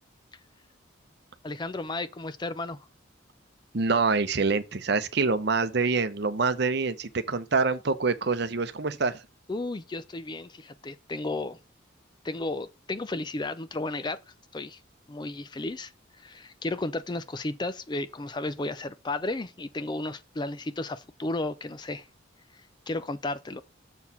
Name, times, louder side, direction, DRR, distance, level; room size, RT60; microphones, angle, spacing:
voice 1, 1.4-2.8 9.5-11.6 12.2-14.2 14.5-14.8 15.1-15.9 16.2-22.1 22.9-23.6, left 2 dB, 20° left, 0.4 m, -33 dB
voice 2, 3.7-9.2, right 4 dB, 55° right, 0.7 m, -26 dB
7.0 x 4.7 x 5.4 m
head